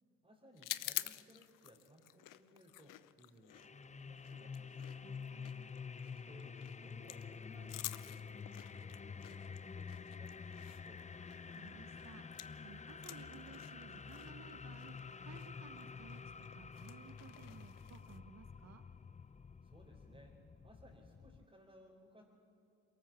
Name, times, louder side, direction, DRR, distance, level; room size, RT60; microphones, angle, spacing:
voice 1, 0.2-5.0 6.1-11.1 19.6-22.2, equal, 20° right, -3 dB, 4.1 m, -62 dB
sound 1, 0.6-12.6 12.9-18.2, left 15 dB, 80° left, 0.7 m, -49 dB
sound 2, 3.5-21.5, left 5 dB, 20° left, 0.6 m, -49 dB
voice 2, 5.0-5.7 11.1-11.2 11.5-18.8, right 6 dB, 55° right, 9 dB, 1.1 m, -58 dB
22.0 x 18.0 x 7.5 m, 2.6 s
supercardioid pair, 65°, 32 cm